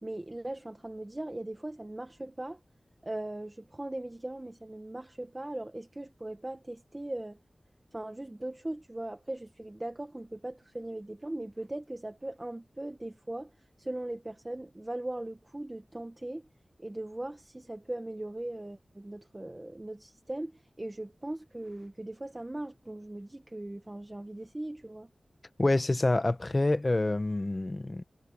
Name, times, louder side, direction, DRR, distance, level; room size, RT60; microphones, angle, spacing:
voice 1, 0.0-2.6 3.0-7.4 7.9-13.5 13.8-16.5 16.8-25.1, right 1 dB, 25° right, 1.3 m, -39 dB
voice 2, 25.6-28.0, left 2 dB, 35° left, 1.0 m, -27 dB
wide cardioid pair, 80°, 0 cm